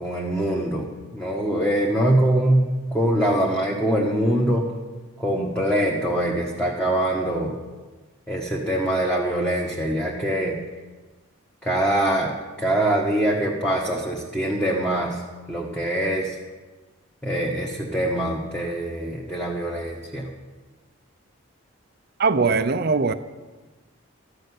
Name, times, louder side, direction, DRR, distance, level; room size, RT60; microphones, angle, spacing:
voice 1, 0.0-4.7 5.2-7.5 8.3-10.6 11.6-15.2 15.5-16.3 17.2-20.3, right 1 dB, 5° left, 1.2 m, -23 dB
voice 2, 22.2-23.1, right 4 dB, 50° right, 0.5 m, -20 dB
13.5 x 6.5 x 9.5 m
head